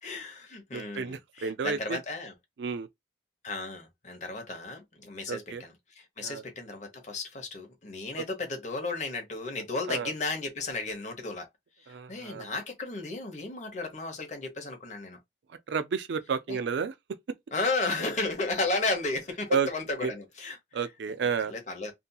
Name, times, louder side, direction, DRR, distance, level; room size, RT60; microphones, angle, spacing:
voice 1, 0.0-2.3 3.4-11.5 11.8-15.2 16.5-16.6 17.5-20.6 21.5-21.9, left 3 dB, 40° left, 0.9 m, -34 dB
voice 2, 0.7-2.0 2.6-2.9 5.3-5.6 6.2-6.4 9.9-10.1 11.9-12.5 15.7-16.9 19.5-19.7 20.0-20.1 20.7-21.5, right 6 dB, 70° right, 0.4 m, -31 dB
2.7 x 2.6 x 2.2 m
head